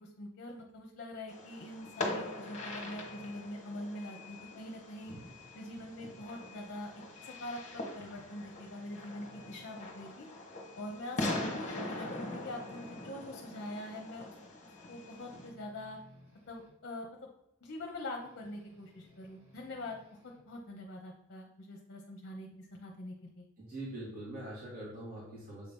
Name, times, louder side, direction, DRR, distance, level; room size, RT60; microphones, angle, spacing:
voice 1, 0.0-5.1 5.5-6.9 7.2-10.3 10.8-14.4 14.9-16.0 16.5-17.3 17.6-20.0 20.5-23.5, left 1 dB, 50° left, 1 dB, 0.8 m, -44 dB
Fireworks, 1.3-15.5, left 2 dB, 30° left, 1.2 m, -42 dB
sound 1, 2.2-3.8 4.2-4.4 4.7-7.5 7.8-7.9 8.3-10.2 10.7-10.8 11.2-13.6 14.9-16.8 18.1-20.5, equal, 65° right, 2.5 m, -62 dB
voice 2, 23.6-25.7, right 1 dB, 40° right, -7 dB, 1.7 m, -43 dB
7.3 x 2.9 x 5.2 m, 0.80 s
head